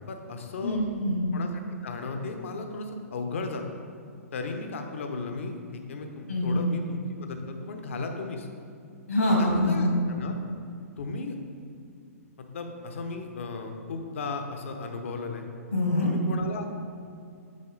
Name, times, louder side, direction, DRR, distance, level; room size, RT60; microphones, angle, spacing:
voice 1, 0.0-0.8 1.3-3.6 4.3-8.5 9.4-10.4 11.0-11.4 12.5-15.4 16.0-16.6, left 3 dB, 55° left, 5 dB, 0.8 m, -35 dB
voice 2, 0.6-1.2 6.3-6.6 9.1-10.0 15.7-16.1, left 1 dB, 75° left, -2 dB, 1.6 m, -24 dB
7.6 x 5.6 x 3.8 m, 2.4 s
figure-of-eight pair, 115°, 8 cm